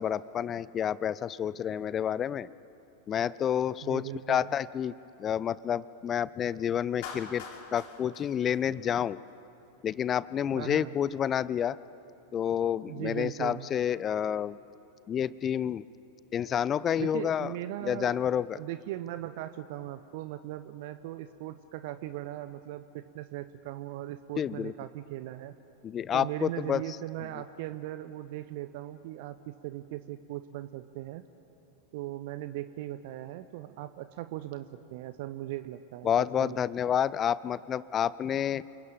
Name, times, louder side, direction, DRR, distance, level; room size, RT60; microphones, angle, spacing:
voice 1, 0.0-2.5 3.1-4.9 5.2-7.4 7.7-9.2 9.8-11.8 12.3-14.6 15.1-15.8 16.3-17.5 17.8-18.6 24.4-24.7 25.8-26.8 36.0-38.6, left 9 dB, 25° left, 20 dB, 0.5 m, -29 dB
voice 2, 3.8-4.5 10.5-10.9 12.9-13.7 17.0-18.2 18.5-25.6 26.1-31.2 31.9-36.6, right 14 dB, 50° right, 12 dB, 0.8 m, -39 dB
Clapping, 7.0-9.3, left 5 dB, 50° left, 4.1 m, -44 dB
29.0 x 21.0 x 8.9 m, 2.8 s
figure-of-eight pair, 90°, 0 cm